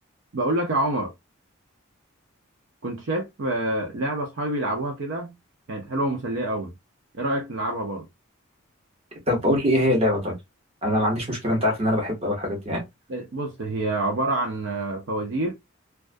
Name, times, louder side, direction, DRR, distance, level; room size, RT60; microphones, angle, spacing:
voice 1, 0.3-1.1 2.8-5.3 5.7-6.7 7.1-8.1 13.1-15.5, right 1 dB, 60° right, 0.5 m, -27 dB
voice 2, 9.3-10.3 10.8-12.8, left 1 dB, 30° right, 0.9 m, -23 dB
2.3 x 2.2 x 2.4 m
head